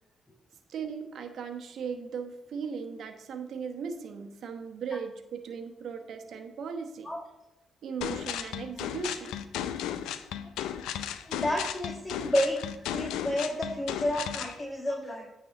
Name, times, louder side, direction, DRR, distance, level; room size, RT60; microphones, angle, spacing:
voice 1, 0.7-7.1 7.8-9.4, right 6 dB, 65° right, 5 dB, 1.1 m, -37 dB
sound 1, 8.0-14.6, left 10 dB, 80° left, 0.5 m, -35 dB
voice 2, 11.2-12.6 12.9-15.3, left 1 dB, 20° left, 0 dB, 1.7 m, -30 dB
9.4 x 4.1 x 6.6 m, 0.90 s
hypercardioid pair, 45°, 0 cm